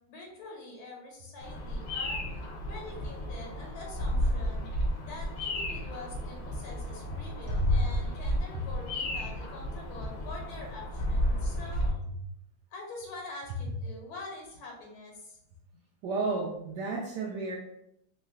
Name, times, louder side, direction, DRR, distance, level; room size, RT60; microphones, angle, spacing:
voice 1, 0.1-2.2 2.7-4.7 5.0-11.9 12.7-15.4, left 2 dB, 85° left, -1 dB, 1.8 m, -45 dB
Bird vocalization bird call bird song, 1.4-11.9, equal, 65° left, 1.0 m, -32 dB
voice 2, 16.0-17.6, right 1 dB, 75° right, -1 dB, 1.0 m, -31 dB
3.8 x 3.1 x 2.3 m, 0.79 s
omnidirectional pair, 2.2 m